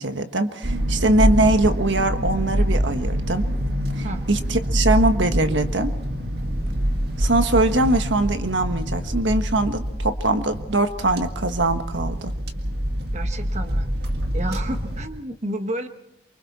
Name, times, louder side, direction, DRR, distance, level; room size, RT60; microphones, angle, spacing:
voice 1, 0.0-3.5 4.0-5.9 7.2-12.3, right 2 dB, 75° right, 8 dB, 1.4 m, -22 dB
sound 1, 0.6-15.1, equal, 55° right, 1.9 m, -25 dB
voice 2, 13.1-13.9 14.3-15.9, right 1 dB, 35° right, 7 dB, 1.1 m, -31 dB
28.0 x 24.5 x 4.2 m, 0.79 s
head